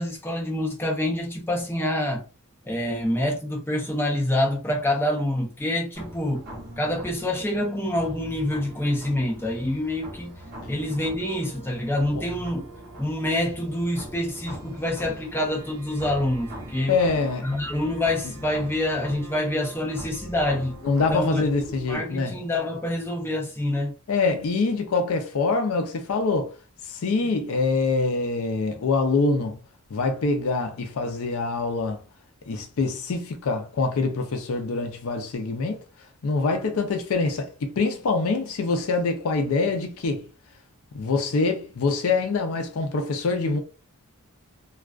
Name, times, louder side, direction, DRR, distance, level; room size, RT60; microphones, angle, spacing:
voice 1, 0.0-2.2 2.6-6.5 6.8-10.3 10.7-12.7 13.0-17.0 17.4-20.8 21.1-21.5 21.9-23.9, left 1 dB, 10° left, 0.6 m, -26 dB
sound 1, 5.9-21.9, right 1 dB, 45° right, 0.8 m, -41 dB
voice 2, 16.9-17.5 20.8-22.3 24.1-26.5 26.9-29.6 29.9-32.0 32.5-35.8 36.2-40.3 40.9-43.6, left 3 dB, 65° left, 0.5 m, -25 dB
2.3 x 2.3 x 2.3 m
head